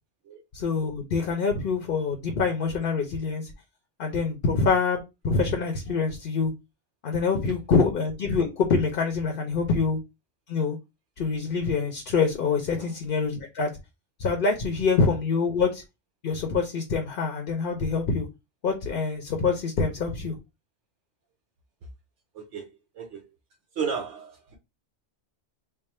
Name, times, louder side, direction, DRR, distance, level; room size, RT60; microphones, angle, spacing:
voice 1, 0.5-3.5 4.0-6.5 7.0-10.0 10.5-10.8 11.2-13.7 14.2-15.8 16.2-18.3 18.6-20.4, left 4 dB, 55° left, 0.8 m, -25 dB
voice 2, 22.3-23.2 23.7-24.6, right 6 dB, 75° right, 1.0 m, -34 dB
3.3 x 2.0 x 4.1 m
omnidirectional pair, 1.2 m